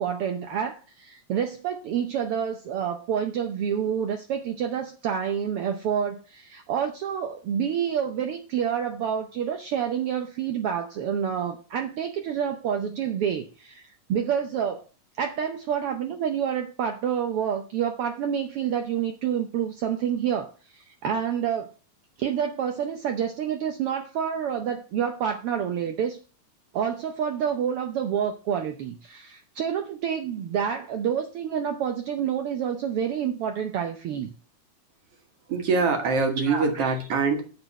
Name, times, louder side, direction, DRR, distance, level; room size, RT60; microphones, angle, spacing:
voice 1, 0.0-14.8 15.2-21.7 22.2-26.2 26.7-34.3 36.5-36.9, right 8 dB, 80° right, 6 dB, 1.3 m, -28 dB
voice 2, 35.5-37.4, right 4 dB, 55° right, 4 dB, 2.2 m, -23 dB
8.6 x 4.2 x 6.6 m, 0.36 s
omnidirectional pair, 3.5 m